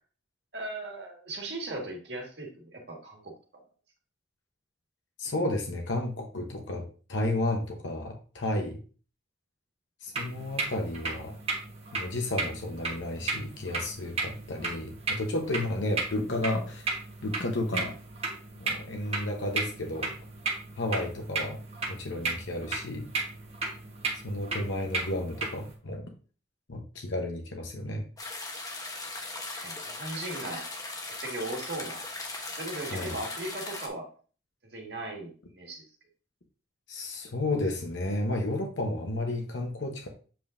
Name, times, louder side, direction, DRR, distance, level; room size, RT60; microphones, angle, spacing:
voice 1, 0.5-3.3 29.5-30.6 31.1-32.0 32.6-34.1 34.7-35.8, right 2 dB, 65° right, 0 dB, 1.7 m, -38 dB
voice 2, 5.2-8.8 10.0-11.3 11.9-16.9 17.2-17.9 18.6-20.1 20.8-21.6 21.9-23.1 24.2-26.0 26.7-28.0 32.9-33.1 36.9-40.1, left 1 dB, 90° left, 2 dB, 0.9 m, -32 dB
sound 1, 10.1-25.7, right 3 dB, 35° right, 1.2 m, -35 dB
sound 2, 28.2-33.9, left 2 dB, 20° left, 0.9 m, -38 dB
7.5 x 5.3 x 2.6 m, 0.38 s
head